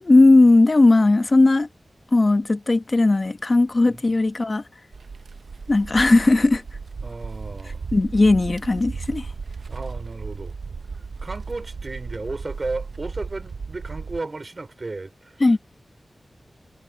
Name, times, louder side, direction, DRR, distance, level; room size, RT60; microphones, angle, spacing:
voice 1, 0.0-1.7 2.1-4.6 5.7-6.6 7.9-9.3 15.4-15.6, left 2 dB, 40° left, 1.1 m, -17 dB
sound 1, 4.9-14.2, right 4 dB, 85° right, 0.7 m, -35 dB
voice 2, 7.0-7.9 9.7-10.5 11.2-15.4, right 3 dB, 45° right, 3.7 m, -34 dB
wide cardioid pair, 100°, 0 cm